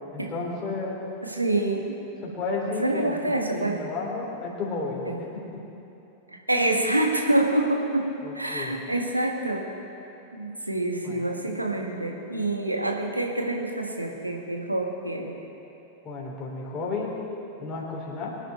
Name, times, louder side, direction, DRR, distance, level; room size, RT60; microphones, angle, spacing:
voice 1, 0.1-1.0 2.2-5.3 5.5-5.6 8.2-8.8 11.0-11.9 16.0-17.2 17.6-18.4, left 3 dB, 25° left, -4 dB, 3.7 m, -33 dB
voice 2, 1.2-2.0 2.8-3.8 5.0-5.2 6.3-9.7 10.3-15.3, right 1 dB, 85° right, 1 dB, 1.5 m, -26 dB
24.0 x 10.0 x 4.3 m, 3.0 s
figure-of-eight pair, 90°, 0 cm